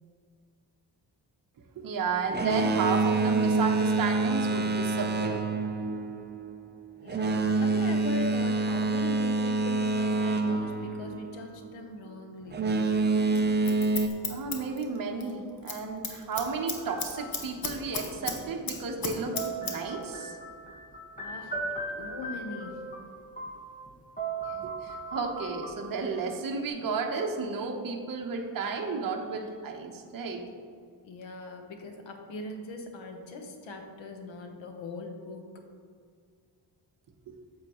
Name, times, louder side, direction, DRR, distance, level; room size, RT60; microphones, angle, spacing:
voice 1, 1.8-5.4 13.7-13.8 14.3-20.4 24.4-30.5 37.3-37.4, right 4 dB, 50° right, 2 dB, 0.9 m, -33 dB
Boat Water vehicle, 2.3-11.7 12.5-14.1, right 3 dB, 25° right, 0.5 m, -27 dB
voice 2, 7.0-12.8 21.2-21.6 21.9-22.9 31.0-35.5, left 2 dB, 90° left, 4 dB, 1.1 m, -40 dB
Scissors, 13.3-15.3 15.6-18.4 18.7-19.7 20.0-20.1, left 5 dB, 50° left, 1.1 m, -34 dB
sound 1, 16.7-17.7 19.3-23.9 24.2-26.3, right 3 dB, 15° left, 1.3 m, -38 dB
8.6 x 7.1 x 3.0 m, 2.1 s
cardioid pair, 110°, 45 cm